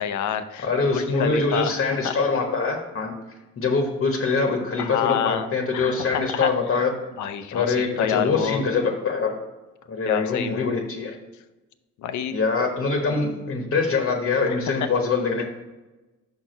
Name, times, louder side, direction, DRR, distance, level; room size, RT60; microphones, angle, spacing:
voice 1, 0.0-2.1 4.8-6.5 7.2-8.6 10.0-10.7 12.0-12.4 14.5-14.9, left 9 dB, 75° left, 10 dB, 0.6 m, -28 dB
voice 2, 0.6-3.1 3.6-6.9 7.5-9.3 9.9-11.1 12.3-15.4, left 4 dB, 45° left, 3 dB, 1.1 m, -24 dB
5.7 x 4.4 x 5.1 m, 1.1 s
cardioid pair, 90°, 30 cm